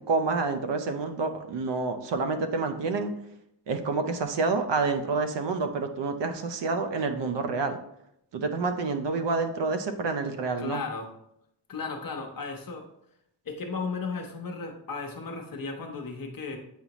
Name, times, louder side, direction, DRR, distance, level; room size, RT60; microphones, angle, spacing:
voice 1, 0.1-3.1 3.7-7.8 8.3-10.8, right 4 dB, 65° right, 7 dB, 0.7 m, -28 dB
voice 2, 10.6-11.1 11.7-12.9 13.4-16.6, left 4 dB, 45° left, 3 dB, 0.9 m, -35 dB
8.3 x 4.1 x 3.0 m, 0.78 s
cardioid pair, 105°, 46 cm